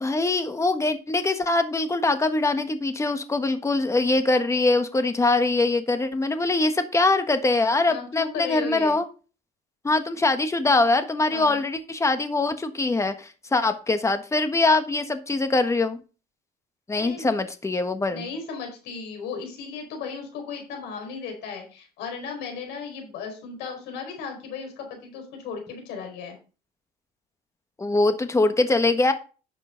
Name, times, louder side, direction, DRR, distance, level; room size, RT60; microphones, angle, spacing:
voice 1, 0.0-9.0 9.8-16.0 16.9-18.3 27.8-29.1, left 2 dB, 15° left, 9 dB, 1.4 m, -23 dB
voice 2, 7.9-9.0 11.3-11.6 16.9-17.3 18.1-26.4, left 5 dB, 90° left, 2 dB, 4.9 m, -35 dB
10.5 x 6.7 x 4.0 m, 0.34 s
cardioid pair, 110°, 17 cm